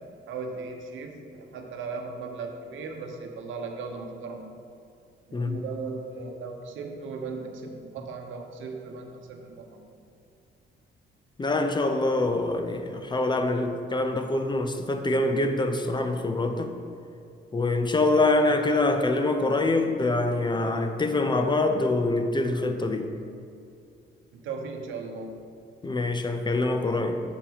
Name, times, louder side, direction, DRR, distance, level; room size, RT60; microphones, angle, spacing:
voice 1, 0.0-4.5 5.3-9.9 24.3-25.4, right 4 dB, 80° right, 3 dB, 0.9 m, -37 dB
voice 2, 11.4-16.7 17.5-23.1 25.8-27.2, left 2 dB, 25° left, 7 dB, 0.6 m, -25 dB
7.2 x 4.7 x 5.1 m, 2.4 s
cardioid pair, 90°, 20 cm